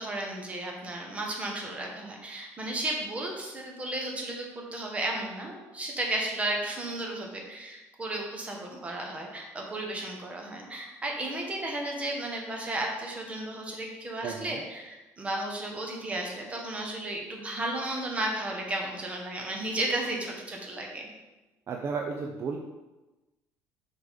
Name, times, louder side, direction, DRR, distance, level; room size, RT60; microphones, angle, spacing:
voice 1, 0.0-21.0, right 1 dB, 20° right, 0 dB, 1.4 m, -34 dB
voice 2, 14.2-14.6 21.7-22.6, right 5 dB, 45° right, 2 dB, 0.6 m, -33 dB
5.9 x 3.7 x 5.1 m, 1.1 s
cardioid pair, 115°, 6 cm